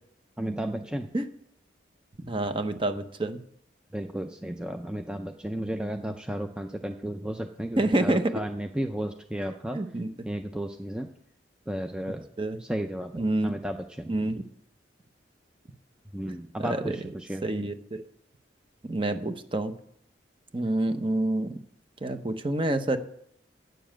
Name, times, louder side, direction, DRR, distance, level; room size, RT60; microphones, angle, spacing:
voice 1, 0.4-1.1 3.9-9.8 10.2-11.1 11.7-12.3 12.6-14.1 16.1-17.5, right 1 dB, 5° right, 5 dB, 0.4 m, -33 dB
voice 2, 2.3-3.4 7.8-8.3 9.7-10.1 12.4-12.6 13.2-13.5 14.1-14.4 16.3-17.0 17.4-18.0 18.8-19.7 20.5-21.6 22.0-23.0, right 2 dB, 30° right, 9 dB, 0.8 m, -27 dB
9.1 x 7.0 x 7.4 m, 0.69 s
head